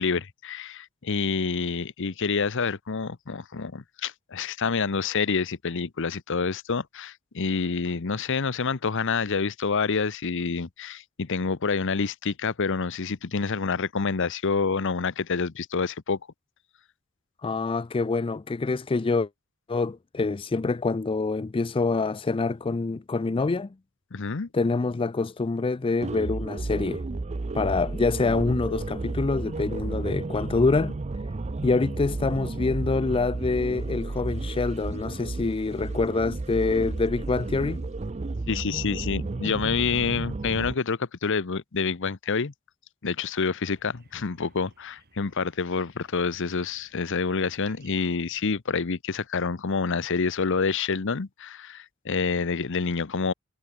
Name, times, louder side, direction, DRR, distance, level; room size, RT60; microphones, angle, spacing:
voice 1, 0.0-16.2 24.1-24.5 38.5-42.5 43.0-53.3, left 5 dB, 60° left, 0.8 m, -27 dB
voice 2, 17.4-19.3 19.7-23.7 24.5-27.0 27.5-31.0 31.6-37.8, left 3 dB, 25° left, 0.4 m, -26 dB
sound 1, 26.0-40.8, right 3 dB, 30° right, 0.5 m, -32 dB
sound 2, 43.6-48.6, right 4 dB, 50° right, 5.0 m, -61 dB
head